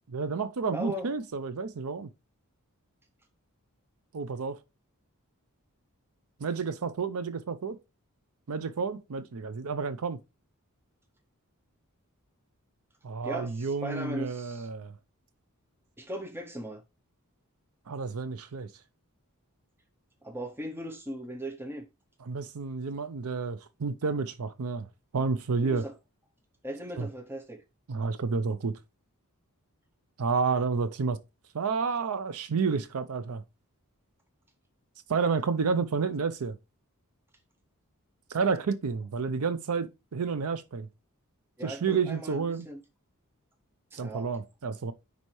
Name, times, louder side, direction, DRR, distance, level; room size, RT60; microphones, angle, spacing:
voice 1, 0.1-2.1 4.1-4.6 6.4-7.8 8.5-10.2 13.0-14.9 17.9-18.7 22.2-25.9 27.0-27.1 27.9-28.8 30.2-31.2 31.5-33.4 35.1-36.6 38.3-40.9 41.6-42.7 43.9-44.9, right 5 dB, 70° right, 0.6 m, -30 dB
voice 2, 0.7-1.1 13.2-14.7 16.0-16.8 20.2-21.9 25.6-25.9 26.6-27.6 41.6-42.8 43.9-44.3, right 1 dB, 10° right, 0.6 m, -38 dB
9.8 x 4.2 x 3.1 m
head